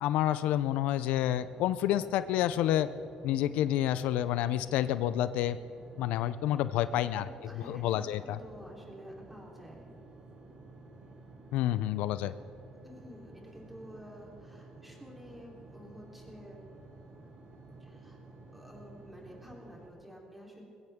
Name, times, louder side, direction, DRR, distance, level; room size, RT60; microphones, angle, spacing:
voice 1, 0.0-2.9 3.2-5.6 6.0-7.3 7.5-8.4 11.5-12.3, left 12 dB, 85° left, 14 dB, 0.5 m, -29 dB
sound 1, 1.2-19.9, right 2 dB, 50° right, 3.1 m, -52 dB
voice 2, 6.9-9.8 12.8-16.6 17.8-18.2 18.5-20.6, equal, 5° right, -2 dB, 3.5 m, -51 dB
21.0 x 16.0 x 3.6 m, 2.5 s
cardioid pair, 120°, 2 cm